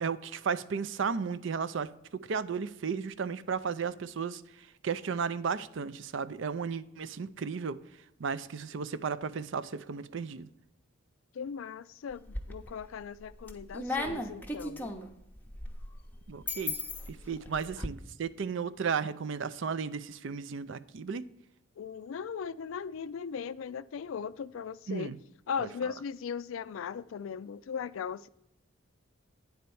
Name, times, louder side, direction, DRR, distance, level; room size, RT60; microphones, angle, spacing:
voice 1, 0.0-1.9 2.3-7.8 8.2-10.5 16.3-16.8 17.1-21.3 24.9-25.2 25.6-25.9, right 6 dB, 60° right, 0.4 m, -34 dB
voice 2, 11.3-14.9 21.8-25.1 25.5-28.3, left 6 dB, 70° left, 0.3 m, -38 dB
sound 1, 12.1-12.8 13.2-17.9, left 2 dB, 10° left, 0.6 m, -37 dB
9.3 x 4.3 x 6.9 m
head